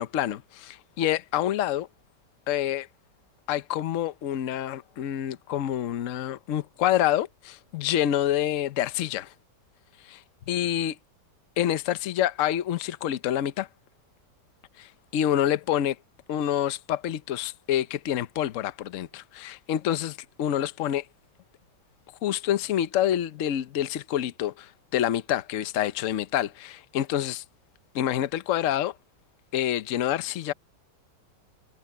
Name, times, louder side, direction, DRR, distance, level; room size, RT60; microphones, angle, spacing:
voice 1, 0.0-1.9 2.5-2.9 3.5-9.3 10.0-10.2 10.5-11.0 11.6-13.7 14.8-15.9 16.3-21.0 22.2-27.4 27.9-28.9 29.5-30.5, left 11 dB, 55° left, 1.0 m, -27 dB
omnidirectional pair, 1.9 m